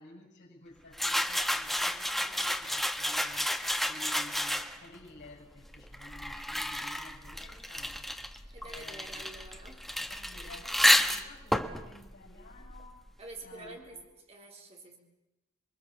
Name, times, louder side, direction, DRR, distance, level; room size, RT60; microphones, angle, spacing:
voice 1, 0.0-8.1 8.6-9.2 10.1-13.1 13.4-14.0, left 2 dB, 55° left, 1 dB, 6.1 m, -52 dB
sound 1, 0.9-5.0 5.7-13.1, left 1 dB, ahead, 1.2 m, -31 dB
voice 2, 8.5-9.9 13.2-14.0 14.3-15.0, right 2 dB, 30° right, 1 dB, 3.9 m, -47 dB
27.5 x 22.0 x 7.2 m, 0.96 s
head